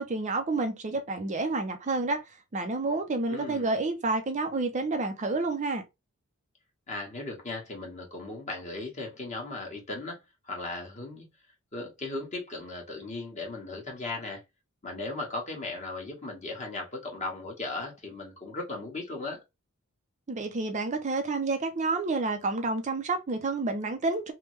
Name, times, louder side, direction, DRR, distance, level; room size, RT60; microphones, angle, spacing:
voice 1, 0.0-2.2 2.5-5.8 20.3-24.3, right 3 dB, 35° right, 0.5 m, -29 dB
voice 2, 3.3-3.7 6.9-10.2 10.5-11.3 11.7-14.4 14.8-19.4, left 2 dB, 35° left, 1.4 m, -37 dB
3.4 x 2.2 x 3.1 m
head